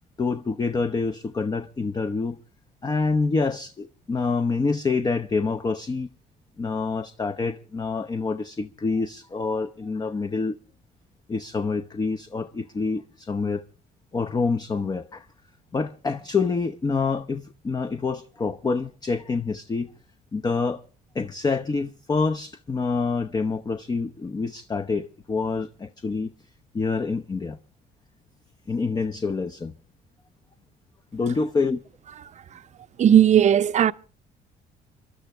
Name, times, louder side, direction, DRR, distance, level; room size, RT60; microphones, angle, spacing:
voice 1, 0.2-2.4 2.8-6.1 6.6-10.6 11.3-13.6 14.1-15.3 15.7-19.9 20.3-20.8 21.1-26.3 26.7-27.6 28.7-29.7 31.1-31.8, left 4 dB, 25° left, 0.8 m, -27 dB
voice 2, 33.0-33.9, right 10 dB, 45° right, 0.7 m, -16 dB
29.5 x 12.0 x 3.3 m
cardioid pair, 110°, 17 cm